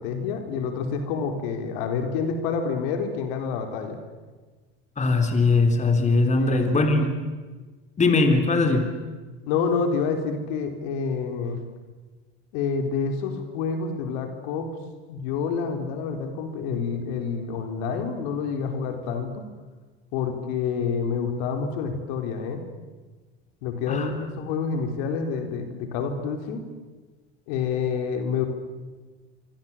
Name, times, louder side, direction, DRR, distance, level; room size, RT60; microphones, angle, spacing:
voice 1, 0.0-4.0 6.4-7.0 9.5-11.6 12.5-14.7 15.1-19.5 20.1-22.6 23.6-26.6 27.5-28.4, left 5 dB, 75° left, 6 dB, 3.9 m, -28 dB
voice 2, 5.0-7.1 8.0-8.9 23.9-24.2, left 3 dB, 25° left, 6 dB, 3.6 m, -20 dB
25.5 x 25.0 x 7.4 m, 1.3 s
supercardioid pair, 100°, 31 cm